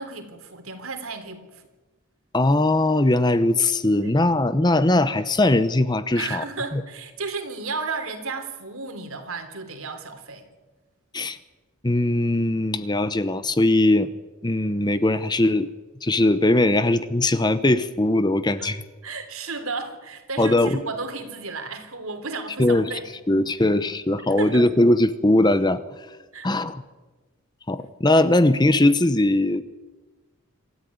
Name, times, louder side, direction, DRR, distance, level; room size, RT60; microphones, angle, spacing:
voice 1, 0.0-1.6 4.0-4.1 6.1-10.5 18.6-18.7 19.0-23.0 23.6-23.7 24.2-24.7 26.3-26.5, right 4 dB, 75° right, 7 dB, 3.4 m, -33 dB
voice 2, 2.3-6.4 6.7-6.8 11.1-11.4 11.8-14.1 14.4-15.7 16.0-18.8 20.4-20.8 22.6-22.8 23.3-25.8 26.4-26.8 27.7-29.6, left 1 dB, 20° left, 13 dB, 0.8 m, -20 dB
26.0 x 14.0 x 9.5 m, 1.2 s
head